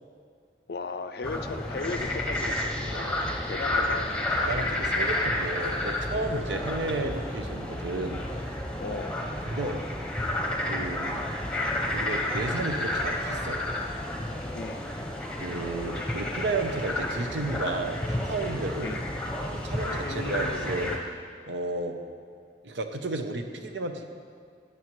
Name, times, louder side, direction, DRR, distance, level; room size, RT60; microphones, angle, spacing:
voice 1, 0.7-4.1 6.5-6.7 8.8-9.2 14.5-14.8 18.8-19.0 20.0-20.7, left 3 dB, 60° left, 10 dB, 0.5 m, -36 dB
sound 1, 1.2-21.0, left 1 dB, 5° left, 0.8 m, -31 dB
voice 2, 4.5-8.2 9.4-9.8 10.6-11.2 11.9-13.6 15.4-19.0 19.5-20.9 21.5-22.0 22.6-24.0, right 2 dB, 85° right, 6 dB, 0.8 m, -32 dB
13.0 x 9.2 x 3.2 m, 2.2 s
head